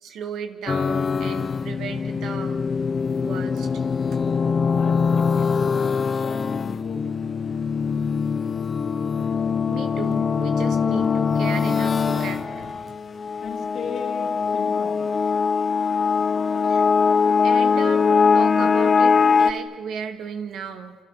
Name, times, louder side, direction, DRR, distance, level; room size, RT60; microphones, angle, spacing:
voice 1, 0.0-2.6 3.2-3.7 4.1-4.2 9.7-12.7 13.3-13.4 14.6-14.8 15.8-15.9 16.6-16.9 17.4-21.0, right 6 dB, 75° right, 7 dB, 2.4 m, -35 dB
Split Audio Tone Progression, 0.7-19.5, left 5 dB, 40° left, 0.8 m, -22 dB
voice 2, 4.7-5.7 6.2-7.0 13.4-15.1, left 6 dB, 65° left, 5 dB, 3.2 m, -37 dB
sound 1, 6.8-12.9, right 3 dB, 50° right, 2.4 m, -48 dB
29.0 x 28.0 x 6.8 m, 1.5 s
cardioid pair, 90°, 0 cm